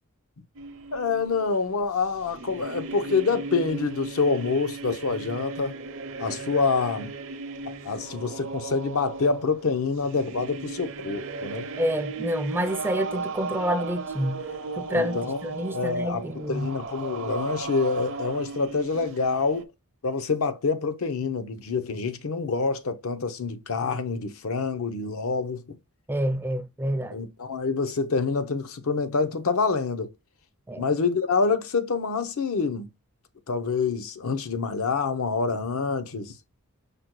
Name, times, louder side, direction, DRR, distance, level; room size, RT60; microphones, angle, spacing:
sound 1, 0.5-19.6, right 3 dB, 60° right, 0.6 m, -36 dB
voice 1, 0.9-5.7 6.2-7.1 7.8-11.7 14.9-15.4 15.7-19.7 20.0-25.8 27.1-30.1 30.8-32.9 33.5-36.3, left 4 dB, 65° left, 0.6 m, -26 dB
voice 2, 11.8-14.4 14.8-16.7 26.1-27.2 30.7-30.8, equal, 10° right, 0.3 m, -28 dB
5.1 x 2.1 x 4.5 m
head